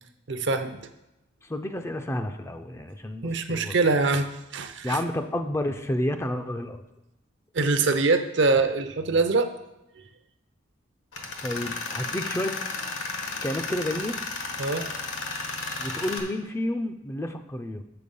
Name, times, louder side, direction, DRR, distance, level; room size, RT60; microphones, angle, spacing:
voice 1, 0.3-0.8 3.2-5.0 7.5-9.5 14.6-14.9, right 3 dB, 60° right, 9 dB, 0.6 m, -24 dB
voice 2, 1.5-3.7 4.8-6.8 11.4-12.5 13.4-14.1 15.8-17.8, left 1 dB, 15° left, 7 dB, 0.4 m, -30 dB
Tools, 11.1-16.2, left 3 dB, 75° left, 1.3 m, -33 dB
6.7 x 6.7 x 5.4 m, 0.94 s
head